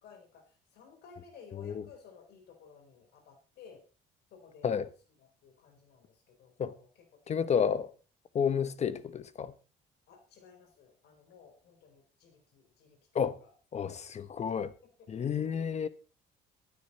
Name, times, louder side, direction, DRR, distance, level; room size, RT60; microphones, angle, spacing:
voice 1, 0.0-3.8 4.3-4.7 5.2-7.9 10.1-13.9 14.6-14.7 15.2-15.6, left 6 dB, 75° left, 4.3 m, -56 dB
voice 2, 7.3-7.9 8.3-9.5 13.1-13.4 13.7-14.7 15.1-15.9, left 7 dB, 40° left, 1.1 m, -30 dB
15.0 x 12.5 x 4.2 m
cardioid pair, 110°, 17 cm